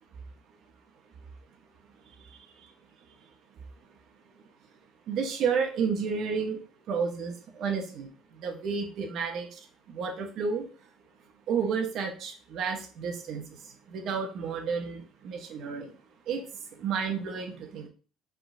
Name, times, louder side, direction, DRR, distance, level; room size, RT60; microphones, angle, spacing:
voice 1, 2.2-2.7 5.1-6.6 6.9-9.6 9.9-10.7 11.5-15.9 16.3-16.4 16.7-17.9, right 6 dB, 55° right, 3 dB, 1.0 m, -31 dB
5.0 x 3.7 x 2.7 m, 0.38 s
cardioid pair, 145°, 0 cm